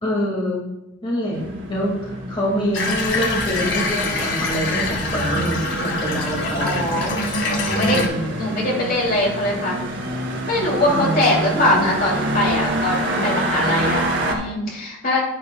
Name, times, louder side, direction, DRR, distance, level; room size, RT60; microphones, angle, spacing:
voice 1, 0.0-0.6 1.0-7.1 7.9-8.3 10.8-11.9 13.1-13.4, equal, 30° left, -5 dB, 2.0 m, -26 dB
sound 1, 1.3-14.4, right 1 dB, 70° right, 2.2 m, -27 dB
Water tap faucet / Bathtub (filling or washing), 2.7-8.1, left 2 dB, 75° left, 1.8 m, -24 dB
voice 2, 6.5-7.2 7.6-8.0 8.4-9.8 10.4-15.2, left 1 dB, 50° left, -2 dB, 2.9 m, -22 dB
10.5 x 10.0 x 2.3 m, 0.93 s
head